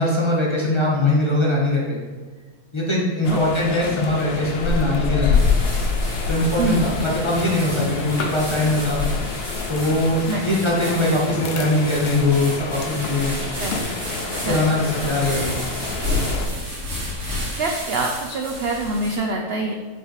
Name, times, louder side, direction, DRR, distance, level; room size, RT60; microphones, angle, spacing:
voice 1, 0.0-2.0 2.7-5.4 6.3-9.0 9.7-13.4 14.4-15.6 16.3-16.4, left 1 dB, 20° left, -5 dB, 1.5 m, -21 dB
sound 1, 3.2-16.5, left 4 dB, 55° left, 0.7 m, -27 dB
sound 2, 5.3-19.2, left 1 dB, 45° right, 2.5 m, -32 dB
voice 2, 6.6-6.9 10.3-10.4 13.6-13.8 14.4-14.7 17.6-19.7, right 2 dB, 60° right, 2 dB, 0.6 m, -25 dB
8.0 x 4.0 x 4.7 m, 1.4 s
omnidirectional pair, 1.7 m